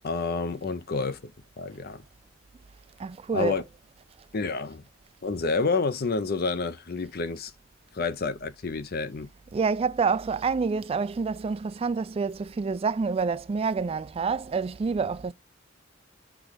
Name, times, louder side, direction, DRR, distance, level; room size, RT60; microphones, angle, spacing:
voice 1, 0.0-1.3 1.6-2.0 3.3-3.6 4.3-4.8 5.2-7.5 7.9-9.3, left 4 dB, 50° left, 0.6 m, -29 dB
voice 2, 3.0-3.5 9.5-15.3, right 5 dB, 30° right, 0.3 m, -27 dB
6.1 x 3.6 x 4.9 m
head